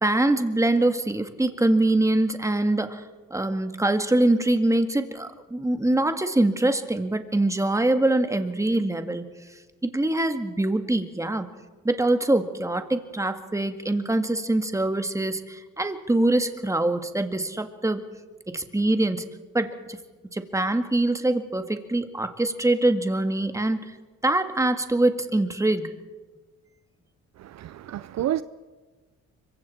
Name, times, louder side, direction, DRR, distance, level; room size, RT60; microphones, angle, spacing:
voice 1, 0.0-3.0 3.3-9.4 9.8-11.5 11.8-18.0 18.5-19.2 19.5-20.0 20.3-23.8 24.2-26.0, right 2 dB, 10° right, 1.8 m, -24 dB
voice 2, 27.4-28.4, right 12 dB, 60° right, 0.6 m, -29 dB
25.5 x 23.5 x 4.4 m
cardioid pair, 90°, 30 cm